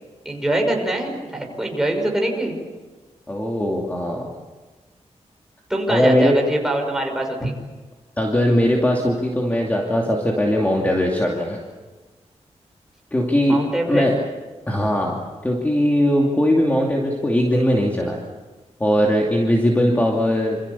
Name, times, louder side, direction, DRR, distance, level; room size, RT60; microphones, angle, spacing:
voice 1, 0.2-2.6 5.7-7.5 13.5-14.1, right 1 dB, 5° right, 1 dB, 5.7 m, -23 dB
voice 2, 3.3-4.3 5.9-6.4 7.4-7.5 8.2-11.6 13.1-13.6 13.9-14.2 14.7-18.2 18.8-20.6, equal, 15° left, -1 dB, 2.6 m, -20 dB
27.5 x 27.5 x 7.1 m, 1.3 s
wide cardioid pair, 175°, 12 cm